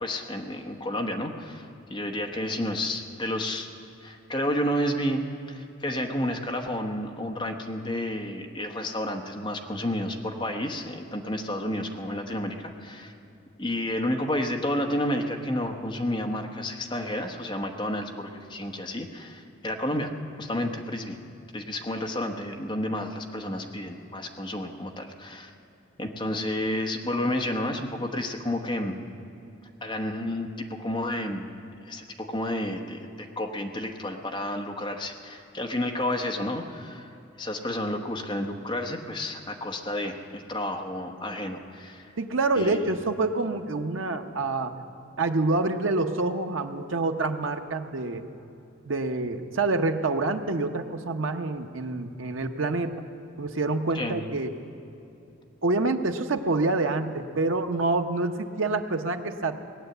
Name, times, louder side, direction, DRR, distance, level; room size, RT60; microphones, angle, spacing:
voice 1, 0.0-3.7 4.0-13.1 13.6-20.1 20.4-21.2 21.5-25.5 26.0-28.9 29.8-31.5 31.8-37.1 37.4-42.1 42.6-42.9 53.9-54.2, left 1 dB, 25° left, 3 dB, 1.0 m, -31 dB
voice 2, 42.2-44.7 45.2-48.3 48.9-53.0 53.4-54.5 55.6-59.6, right 3 dB, 85° right, 6 dB, 0.8 m, -27 dB
19.0 x 8.9 x 7.9 m, 2.8 s
head